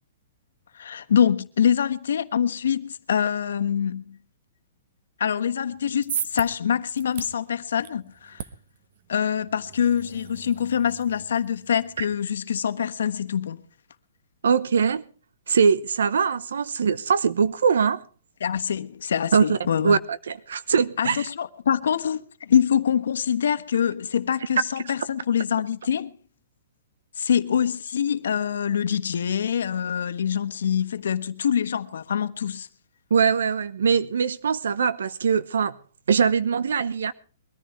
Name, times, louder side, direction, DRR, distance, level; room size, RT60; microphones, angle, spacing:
voice 1, 0.7-4.2 5.2-8.4 9.1-13.6 18.4-20.0 21.0-26.1 27.2-32.7, left 8 dB, 75° left, 1.3 m, -25 dB
sound 1, 5.7-12.0, right 9 dB, 40° right, 1.1 m, -38 dB
voice 2, 14.4-15.0 15.5-18.0 19.3-19.6 19.8-21.3 33.1-35.7 36.1-37.1, right 6 dB, 85° right, 0.9 m, -22 dB
22.5 x 14.0 x 3.2 m
hypercardioid pair, 175°, 0 cm